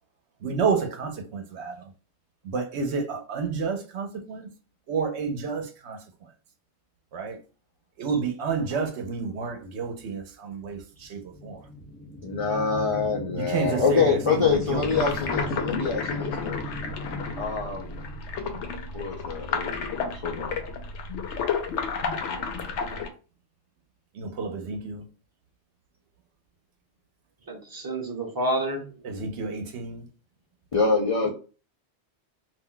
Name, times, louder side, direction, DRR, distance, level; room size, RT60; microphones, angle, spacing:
voice 1, 0.4-1.7 2.4-4.4 4.9-6.0 7.1-7.4 8.0-11.6 13.3-14.9 24.2-25.0 29.0-30.0, right 5 dB, 75° right, 0.9 m, -30 dB
sound 1, 11.3-18.9, left 2 dB, 15° left, 0.6 m, -36 dB
voice 2, 12.2-16.6 17.4-17.9 18.9-20.7 30.7-31.3, left 4 dB, 55° left, 0.3 m, -26 dB
sound 2, 14.5-23.1, left 5 dB, 85° left, 0.9 m, -32 dB
voice 3, 27.5-28.9 31.2-31.3, right 1 dB, 20° right, 0.7 m, -29 dB
2.5 x 2.1 x 3.7 m
omnidirectional pair, 1.2 m